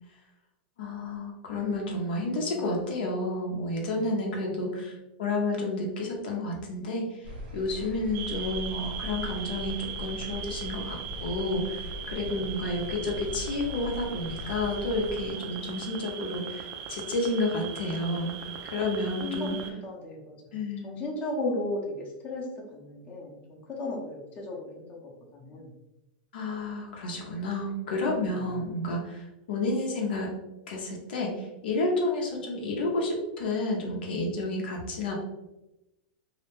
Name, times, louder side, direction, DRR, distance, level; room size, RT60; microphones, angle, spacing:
voice 1, 0.8-7.3 7.5-18.4 18.6-19.6 20.5-20.9 26.3-30.3 30.7-35.1, left 2 dB, 75° left, -1 dB, 0.6 m, -30 dB
sound 1, 7.2-15.3, left 2 dB, 75° right, 0.8 m, -40 dB
sound 2, 8.1-19.7, right 8 dB, 50° right, 0.4 m, -39 dB
voice 2, 12.1-12.5 15.4-15.8 19.0-19.5 19.8-22.5 22.7-25.7 28.2-28.4, left 2 dB, 30° left, -2 dB, 0.6 m, -36 dB
2.1 x 2.1 x 3.0 m, 0.97 s
hypercardioid pair, 130°, 5 cm